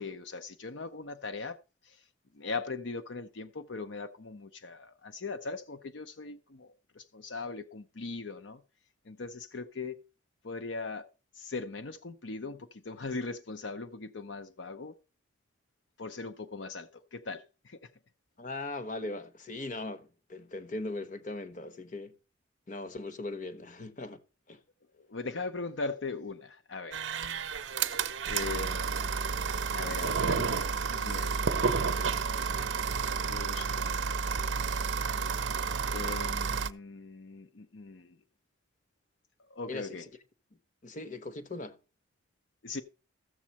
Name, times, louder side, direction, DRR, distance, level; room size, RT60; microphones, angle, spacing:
voice 1, 0.0-2.1 2.3-8.6 9.0-10.0 10.4-15.0 16.0-17.9 24.9-27.1 27.8-29.1 29.7-31.5 33.3-34.1 35.9-38.2 39.5-40.1 42.6-42.8, left 3 dB, 65° left, 0.7 m, -40 dB
voice 2, 18.4-22.1 22.7-24.2 24.5-24.6 39.7-39.9 40.8-41.8, left 2 dB, 40° left, 1.0 m, -39 dB
sound 1, 26.9-36.7, right 5 dB, 65° right, 0.6 m, -31 dB
14.0 x 7.2 x 4.2 m
head